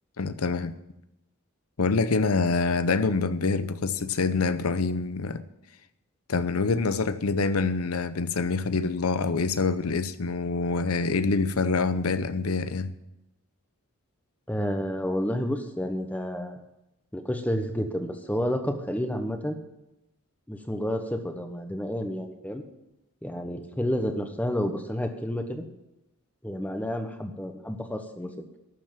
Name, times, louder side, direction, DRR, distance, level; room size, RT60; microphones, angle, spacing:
voice 1, 0.2-0.8 1.8-5.4 6.3-12.9, left 4 dB, 85° left, 0.8 m, -26 dB
voice 2, 14.5-16.6 17.1-19.6 20.5-22.6 23.2-25.6 26.4-28.5, equal, 5° left, 1.1 m, -30 dB
12.0 x 7.4 x 9.1 m
head